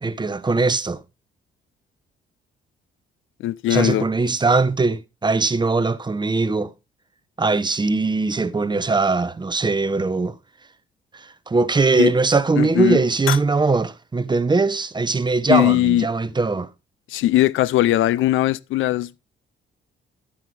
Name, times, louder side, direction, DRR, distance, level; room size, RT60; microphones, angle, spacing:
voice 1, 0.0-1.0 3.7-6.7 7.4-10.4 11.1-16.7, right 3 dB, 20° right, 1.0 m, -21 dB
voice 2, 3.4-4.0 12.0-12.1 12.6-13.0 13.3-13.4 15.5-16.1 17.1-19.3, left 14 dB, 80° left, 0.5 m, -19 dB
11.5 x 9.1 x 3.3 m
cardioid pair, 90°, 20 cm